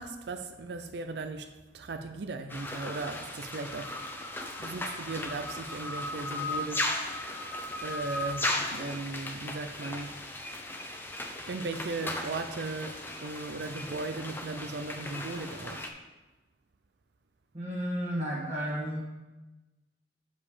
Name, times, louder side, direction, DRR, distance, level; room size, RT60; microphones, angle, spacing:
voice 1, 0.0-4.0 4.6-10.2 10.8-11.1 11.5-16.0, right 3 dB, 65° right, 0.5 m, -38 dB
sound 1, 2.5-15.9, left 2 dB, 10° left, 0.7 m, -36 dB
voice 2, 17.5-19.0, equal, 35° right, 1.4 m, -32 dB
7.2 x 5.3 x 6.6 m
head